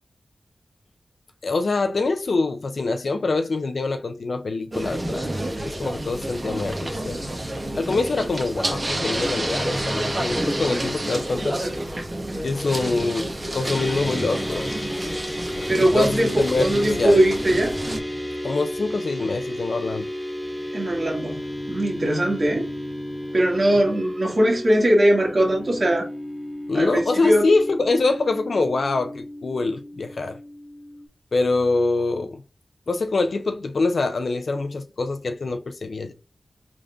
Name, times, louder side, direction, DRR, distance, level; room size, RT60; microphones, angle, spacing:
voice 1, 1.4-5.3 5.6-7.2 7.8-11.6 12.4-14.8 15.8-17.2 18.4-20.1 22.0-22.3 26.7-30.4 31.3-32.4 32.9-36.1, left 3 dB, 70° left, 0.5 m, -24 dB
sound 1, 4.7-18.0, right 1 dB, 30° right, 1.0 m, -29 dB
sound 2, 13.6-31.1, equal, ahead, 2.1 m, -33 dB
voice 2, 15.7-17.7 20.7-21.3 21.7-22.7 23.3-26.1 26.7-27.4, right 1 dB, 50° right, 1.8 m, -20 dB
5.1 x 3.5 x 2.5 m
wide cardioid pair, 65°, 0 cm